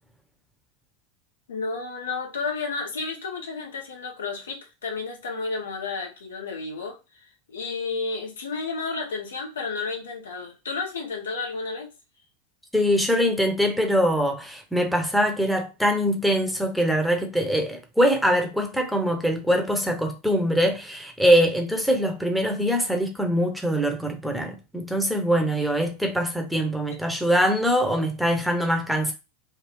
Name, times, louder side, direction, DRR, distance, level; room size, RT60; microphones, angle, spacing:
voice 1, 1.5-11.9, left 4 dB, 80° left, 0.8 m, -32 dB
voice 2, 12.7-29.1, equal, ahead, 0.8 m, -23 dB
3.3 x 2.3 x 3.2 m
hypercardioid pair, 85°, 0 cm